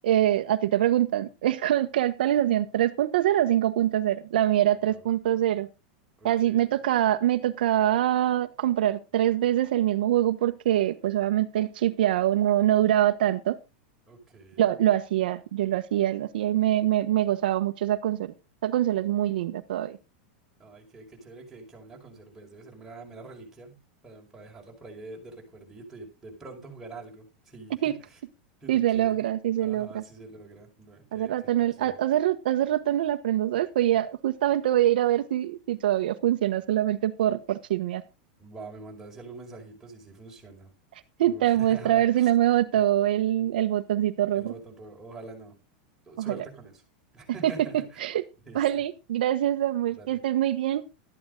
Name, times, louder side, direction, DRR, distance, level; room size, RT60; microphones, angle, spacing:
voice 1, 0.0-5.7 6.2-13.6 14.6-18.3 18.6-20.0 27.8-27.9 28.7-30.0 31.1-38.0 41.2-44.5 46.2-46.4 47.4-47.5 48.0-48.2 48.5-50.8, right 12 dB, 80° right, 8 dB, 1.1 m, -24 dB
voice 2, 6.2-6.7 14.1-14.7 20.6-23.8 24.0-28.2 28.6-29.2 29.6-31.3 31.8-31.9 38.4-40.7 41.2-42.3 42.7-42.8 43.4-43.5 44.3-45.6 46.1-46.8 47.1-48.0 48.5-48.8 49.9-50.2, right 3 dB, 5° right, -2 dB, 5.4 m, -45 dB
13.0 x 10.5 x 3.9 m, 0.28 s
supercardioid pair, 150°, 5 cm